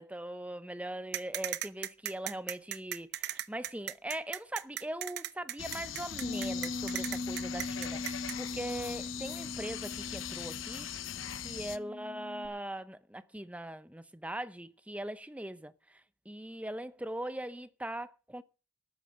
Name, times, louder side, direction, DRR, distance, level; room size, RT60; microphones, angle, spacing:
voice 1, 0.0-10.9 11.4-15.7 16.3-18.4, right 1 dB, 5° right, 0.8 m, -40 dB
sound 1, 1.1-8.4, right 12 dB, 60° right, 0.7 m, -37 dB
sound 2, 5.6-11.8, left 9 dB, 75° left, 0.9 m, -41 dB
Bass guitar, 6.2-12.5, left 2 dB, 50° left, 2.1 m, -40 dB
13.0 x 9.4 x 7.8 m
head